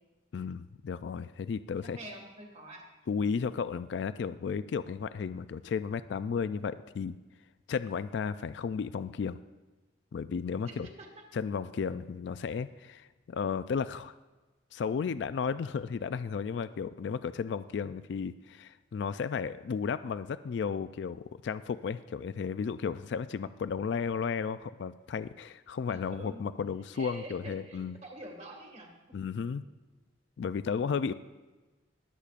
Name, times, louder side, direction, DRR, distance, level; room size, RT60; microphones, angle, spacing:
voice 1, 0.3-2.0 3.1-7.2 7.7-9.4 10.1-10.9 11.3-14.1 14.7-28.0 29.1-29.6 30.4-31.1, left 6 dB, 65° left, 13 dB, 0.3 m, -34 dB
voice 2, 1.8-2.8 10.6-11.2 25.9-26.4 26.9-28.9, right 1 dB, 35° right, 1 dB, 1.9 m, -46 dB
22.0 x 8.3 x 2.5 m, 1.2 s
head